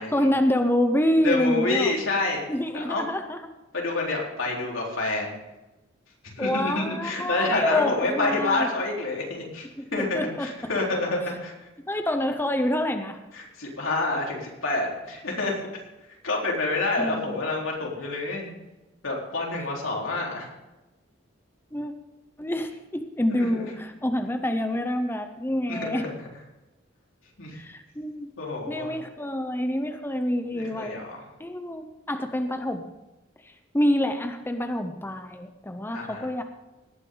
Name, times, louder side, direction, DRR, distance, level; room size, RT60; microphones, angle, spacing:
voice 1, 0.1-1.9 2.5-3.4 6.4-8.7 9.8-10.5 11.8-13.2 17.0-17.4 21.7-21.9 22.4-26.1 27.5-28.3 28.7-31.0 31.4-32.9 33.4-36.4, left 1 dB, 10° left, 6 dB, 0.7 m, -27 dB
voice 2, 1.2-2.4 2.7-3.0 3.7-5.3 6.3-11.5 13.3-15.5 16.2-18.5 19.0-20.5 23.3-23.7 25.7-26.0 27.4-27.6 28.4-28.9 30.5-31.2 35.9-36.3, left 2 dB, 85° left, -2 dB, 3.8 m, -28 dB
18.5 x 9.5 x 3.9 m, 1.0 s
head